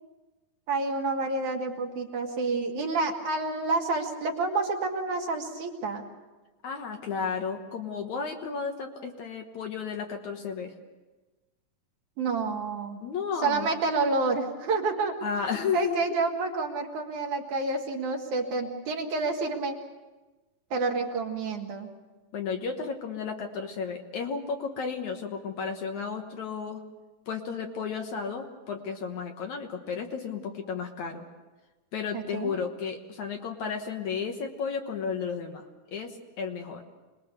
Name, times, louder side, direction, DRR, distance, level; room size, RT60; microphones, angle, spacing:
voice 1, 0.7-6.0 12.2-13.0 13.4-15.1 15.7-19.8 20.7-21.9 32.1-32.5, right 3 dB, 60° right, 2 dB, 3.0 m, -29 dB
voice 2, 6.6-10.7 13.0-13.7 15.2-16.0 22.3-26.8 27.3-31.2 31.9-35.7 35.9-36.8, left 6 dB, 60° left, 4 dB, 2.4 m, -33 dB
26.5 x 20.5 x 6.7 m, 1.2 s
omnidirectional pair, 4.1 m